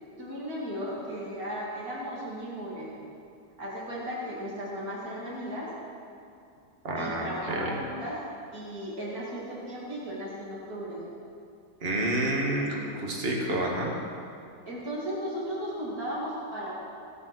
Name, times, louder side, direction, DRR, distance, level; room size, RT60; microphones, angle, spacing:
voice 1, 0.2-2.9 3.6-5.7 7.0-8.2 8.5-11.0 14.7-16.8, equal, 60° right, -6 dB, 3.0 m, -35 dB
voice 2, 6.8-7.7 11.8-13.9, right 1 dB, 35° right, -1 dB, 1.8 m, -29 dB
16.5 x 7.0 x 6.1 m, 2.5 s
omnidirectional pair, 1.8 m